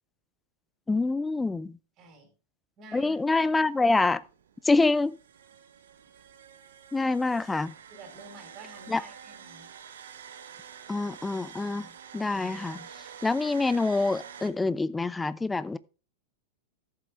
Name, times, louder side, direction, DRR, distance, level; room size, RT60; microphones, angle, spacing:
voice 1, 0.9-1.8 2.9-4.2 4.6-5.1 6.9-7.7 8.9-9.0 10.9-11.9 12.1-12.9 13.2-15.8, left 3 dB, 10° left, 0.5 m, -26 dB
voice 2, 2.0-2.3 2.8-3.7 4.8-4.9 7.9-9.7, right 3 dB, 30° right, 4.9 m, -50 dB
sound 1, 3.0-14.5, right 8 dB, 60° right, 1.1 m, -48 dB
14.0 x 7.6 x 3.3 m
figure-of-eight pair, 90°, 0 cm